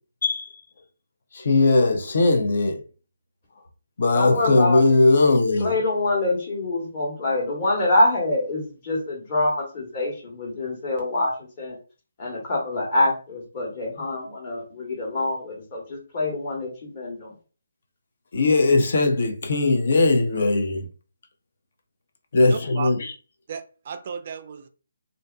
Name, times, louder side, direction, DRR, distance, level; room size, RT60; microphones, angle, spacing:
voice 1, 1.3-2.8 4.0-5.7 18.3-20.9 22.3-23.1, left 3 dB, 55° left, 0.5 m, -19 dB
voice 2, 4.1-4.9 5.6-11.8 12.2-17.3, left 2 dB, 35° left, 1.2 m, -25 dB
voice 3, 22.4-22.9 23.5-24.7, right 6 dB, 40° right, 0.3 m, -34 dB
2.5 x 2.5 x 2.2 m
hypercardioid pair, 160°, 0 cm